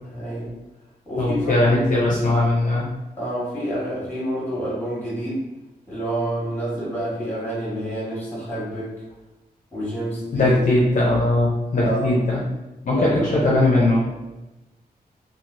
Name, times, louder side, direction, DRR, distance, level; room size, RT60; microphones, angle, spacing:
voice 1, 0.1-0.5 1.0-1.9 3.2-5.4 5.9-8.9 9.7-10.6 11.7-12.1 12.9-13.6, right 1 dB, 10° left, -8 dB, 1.5 m, -28 dB
voice 2, 1.2-2.9 10.3-12.4 12.8-14.0, left 2 dB, 50° left, -4 dB, 0.5 m, -19 dB
3.1 x 2.4 x 2.6 m, 1.0 s
wide cardioid pair, 160°, 17 cm